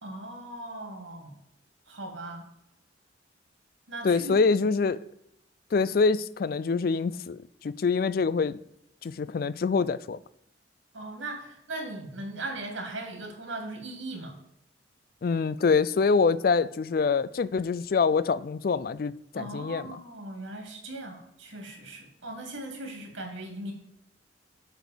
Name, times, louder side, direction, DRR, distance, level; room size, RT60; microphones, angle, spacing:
voice 1, 0.0-1.4 1.9-2.4 3.9-4.4 10.9-14.4 19.3-23.7, right 2 dB, 90° right, 2.5 m, -38 dB
voice 2, 4.0-5.0 5.7-8.6 9.0-10.2 15.2-20.0, left 4 dB, 50° left, 0.3 m, -25 dB
8.1 x 4.1 x 6.8 m
head